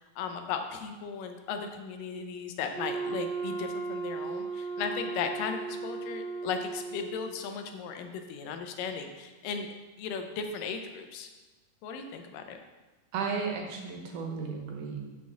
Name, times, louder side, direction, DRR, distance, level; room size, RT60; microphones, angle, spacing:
voice 1, 0.0-9.7 10.0-11.3 11.8-12.6, left 6 dB, 85° left, 5 dB, 2.4 m, -36 dB
Wind instrument woodwind instrument, 2.7-7.4, right 4 dB, 85° right, 2.4 m, -36 dB
voice 2, 13.1-15.0, right 5 dB, 70° right, 1 dB, 2.4 m, -34 dB
6.3 x 6.2 x 7.0 m, 1.2 s
omnidirectional pair, 3.9 m